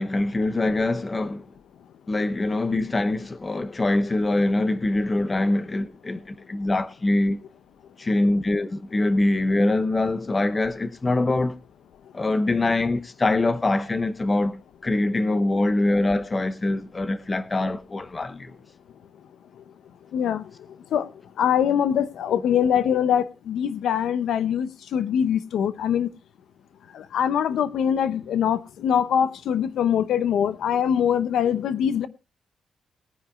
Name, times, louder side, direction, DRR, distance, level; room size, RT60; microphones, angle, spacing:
voice 1, 0.0-1.5 2.1-7.4 8.0-11.6 12.1-18.6, left 2 dB, 20° left, 0.7 m, -24 dB
voice 2, 20.1-20.4 20.9-21.1 21.4-26.1 26.9-32.1, left 8 dB, 80° left, 0.7 m, -23 dB
21.0 x 9.9 x 2.4 m
wide cardioid pair, 170°, 0 cm